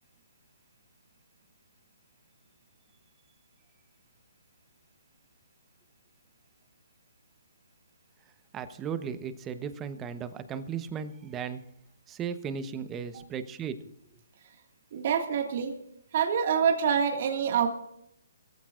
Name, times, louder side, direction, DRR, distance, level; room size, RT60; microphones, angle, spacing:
voice 1, 8.5-11.6 12.1-13.8, right 7 dB, 15° right, 11 dB, 1.0 m, -36 dB
voice 2, 14.9-15.8 16.1-17.7, right 7 dB, 50° right, 4 dB, 2.0 m, -26 dB
22.5 x 15.0 x 2.5 m, 0.74 s
hypercardioid pair, 145°, 0 cm